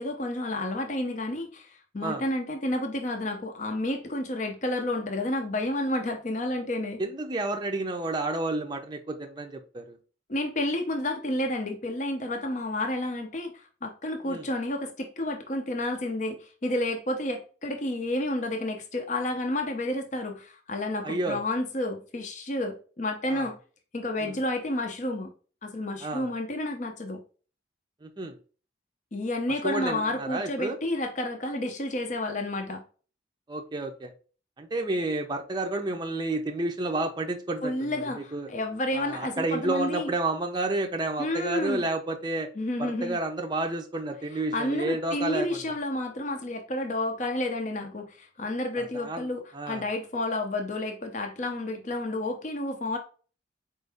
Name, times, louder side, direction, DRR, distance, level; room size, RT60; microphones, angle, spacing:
voice 1, 0.0-7.0 10.3-23.6 23.9-25.3 25.6-27.2 29.1-32.8 37.6-40.1 41.2-41.9 42.6-43.2 44.5-53.0, left 1 dB, 40° left, 0.6 m, -30 dB
voice 2, 7.0-10.0 14.3-14.5 21.0-21.4 23.3-23.5 24.2-24.3 26.0-26.3 28.0-28.4 29.6-30.8 33.5-34.1 34.6-38.5 38.9-42.5 42.8-45.5 48.8-49.3 49.5-49.8, right 2 dB, 25° right, 0.5 m, -30 dB
4.4 x 2.6 x 3.4 m
head